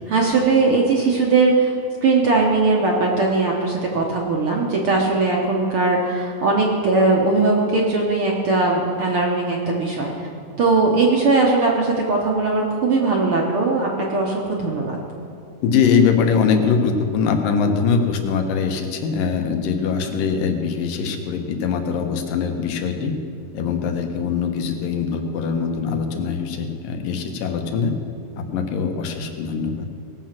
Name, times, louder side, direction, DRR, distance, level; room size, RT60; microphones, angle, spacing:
voice 1, 0.1-1.7 2.0-10.3 10.6-15.0, right 3 dB, 60° right, -2 dB, 1.5 m, -19 dB
voice 2, 15.6-23.2 23.5-27.9 28.4-29.9, left 6 dB, 85° left, 4 dB, 2.8 m, -22 dB
18.0 x 7.7 x 5.9 m, 2.4 s
omnidirectional pair, 3.8 m